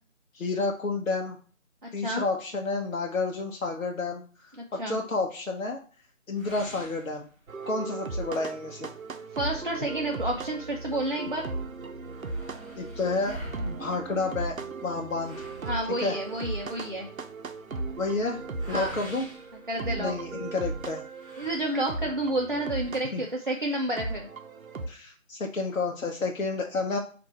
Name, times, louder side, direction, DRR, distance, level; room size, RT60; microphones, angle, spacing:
voice 1, 0.3-1.4 1.9-4.2 4.7-5.8 6.3-7.3 7.7-8.9 12.7-15.4 16.0-16.2 18.0-18.4 18.7-19.3 20.0-21.0 23.1-23.2 24.9-27.0, left 3 dB, 70° left, 1 dB, 0.8 m, -30 dB
voice 2, 1.8-2.2 4.6-5.0 9.3-11.4 15.6-17.1 18.7-19.0 19.7-20.1 21.4-24.3, right 1 dB, 40° right, -1 dB, 0.5 m, -30 dB
sound 1, 6.3-7.8 8.3-8.4 8.8-8.9 9.7-11.0 11.4-11.5 11.7-20.4 21.1-22.2, equal, ahead, 1.1 m, -47 dB
sound 2, 7.5-24.9, right 3 dB, 75° right, 0.7 m, -37 dB
4.6 x 2.5 x 4.2 m, 0.41 s
figure-of-eight pair, 160°, 41 cm